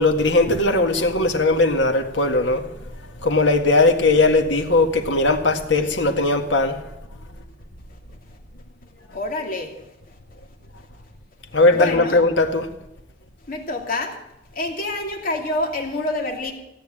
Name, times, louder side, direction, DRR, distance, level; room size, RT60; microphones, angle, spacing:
voice 1, 0.0-2.7 3.2-6.8 11.5-12.7, left 2 dB, 85° left, 1.9 m, -18 dB
voice 2, 9.1-9.7 11.7-12.2 13.5-14.2 14.5-16.5, left 2 dB, 50° left, 2.8 m, -27 dB
16.5 x 9.2 x 8.9 m
head